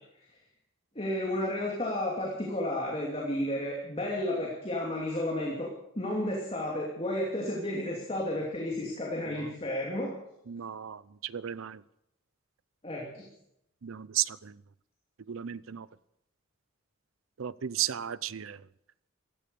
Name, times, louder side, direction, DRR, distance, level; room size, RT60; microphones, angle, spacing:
voice 1, 0.9-10.2 12.8-13.2, left 1 dB, 30° left, 2.7 m, -32 dB
voice 2, 10.5-11.8 13.8-14.6 15.3-15.9 17.4-18.6, right 11 dB, 85° right, 0.6 m, -34 dB
15.5 x 13.0 x 6.8 m
head